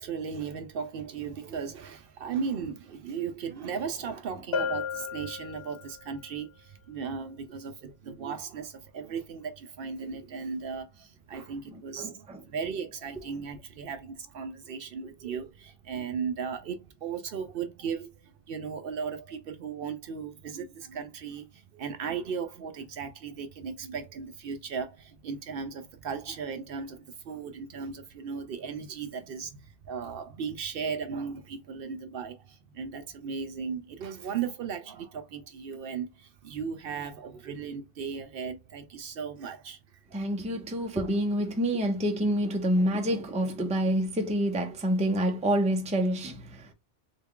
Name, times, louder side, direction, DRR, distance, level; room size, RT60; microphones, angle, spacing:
voice 1, 0.0-40.3, right 6 dB, 65° right, 0.7 m, -36 dB
Bell, 4.5-6.1, left 6 dB, 70° left, 1.1 m, -33 dB
voice 2, 12.0-12.4 40.1-46.7, equal, 10° right, 0.4 m, -27 dB
3.7 x 2.3 x 3.6 m
omnidirectional pair, 1.1 m